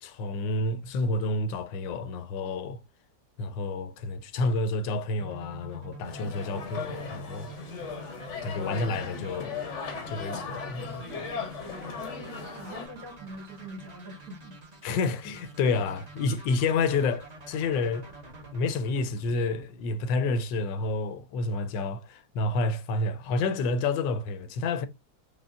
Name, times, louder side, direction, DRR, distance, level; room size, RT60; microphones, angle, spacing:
voice 1, 0.0-2.8 3.4-7.5 8.0-8.1 8.4-9.6 10.1-11.3 14.8-18.1 18.5-24.9, left 3 dB, 85° left, 1.3 m, -29 dB
sound 1, 5.2-20.1, right 2 dB, 40° right, 0.5 m, -46 dB
sound 2, 6.0-12.9, left 6 dB, 60° left, 0.8 m, -37 dB
voice 2, 11.2-14.6, right 1 dB, 75° right, 2.2 m, -44 dB
5.2 x 2.1 x 2.3 m
omnidirectional pair, 2.0 m